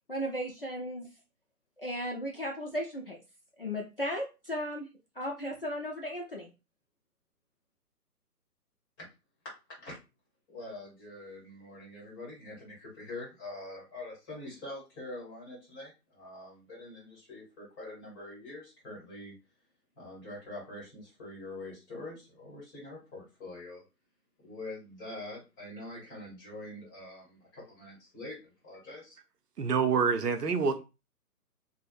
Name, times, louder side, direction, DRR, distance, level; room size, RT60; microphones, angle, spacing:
voice 1, 0.1-1.1 1.8-3.2 3.6-4.9 5.2-6.5, equal, 40° left, 0.4 m, -35 dB
voice 2, 10.5-19.3 20.0-23.8 24.4-29.2, left 2 dB, 15° left, 0.9 m, -44 dB
voice 3, 29.6-30.8, right 5 dB, 75° right, 0.6 m, -27 dB
3.3 x 2.0 x 2.4 m
figure-of-eight pair, 135°, 48 cm